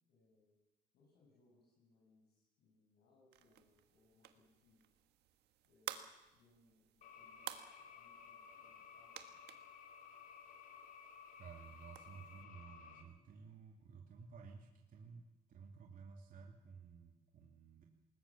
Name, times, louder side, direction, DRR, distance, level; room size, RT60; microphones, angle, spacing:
voice 1, 0.1-0.5 0.9-4.8 5.6-9.4, left 3 dB, 70° left, -2 dB, 6.5 m, -73 dB
sound 1, 3.3-12.4, right 12 dB, 80° right, 1.5 m, -54 dB
sound 2, 7.0-13.0, left 7 dB, 55° left, 3.0 m, -57 dB
voice 2, 11.4-17.8, right 5 dB, 55° right, 1 dB, 2.6 m, -55 dB
20.0 x 19.5 x 7.3 m, 1.0 s
cardioid pair, 110°, 17 cm